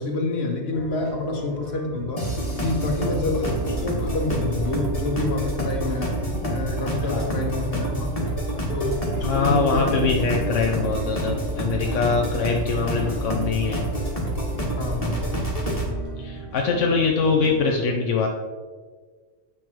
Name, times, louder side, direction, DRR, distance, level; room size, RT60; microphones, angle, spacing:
voice 1, 0.0-2.3 2.6-6.2 6.5-8.3 8.7-10.5 14.8-15.4, left 2 dB, 55° left, 2 dB, 1.5 m, -28 dB
sound 1, 0.7-17.7, right 2 dB, 25° right, 1.7 m, -40 dB
sound 2, 2.2-15.9, right 1 dB, 30° left, 1.8 m, -27 dB
voice 2, 7.0-7.3 9.2-13.9 16.2-18.3, left 4 dB, 80° left, 1 dB, 1.1 m, -23 dB
8.4 x 6.1 x 4.6 m, 1.5 s
omnidirectional pair, 1.3 m